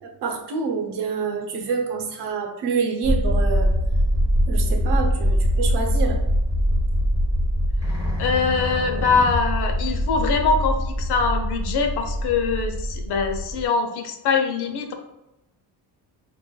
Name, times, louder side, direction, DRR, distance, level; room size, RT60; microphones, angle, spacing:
voice 1, 0.0-3.7 4.5-6.2, right 5 dB, 80° right, 3 dB, 0.8 m, -27 dB
sound 1, 3.0-13.7, equal, 10° right, 0.9 m, -23 dB
voice 2, 8.2-14.9, left 5 dB, 75° left, 4 dB, 0.7 m, -23 dB
5.2 x 2.5 x 2.2 m, 0.91 s
cardioid pair, 160°, 40 cm